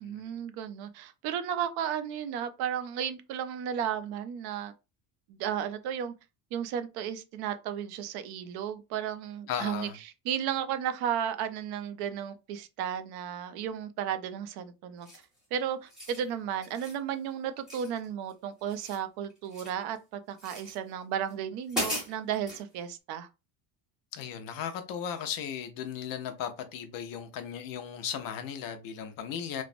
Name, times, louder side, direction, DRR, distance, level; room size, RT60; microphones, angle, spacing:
voice 1, 0.0-4.7 5.3-6.1 6.5-9.9 10.2-15.1 15.5-23.3, right 9 dB, 60° right, 0.5 m, -34 dB
voice 2, 9.5-10.0 24.1-29.6, left 8 dB, 50° left, 0.5 m, -36 dB
sound 1, 15.0-15.4 15.8-16.2 16.6-17.0 17.7-18.3 18.6-19.8 20.4-20.8 21.3-21.4 21.7-22.6, equal, ahead, 1.1 m, -37 dB
3.1 x 2.0 x 2.5 m
cardioid pair, 155°, 43 cm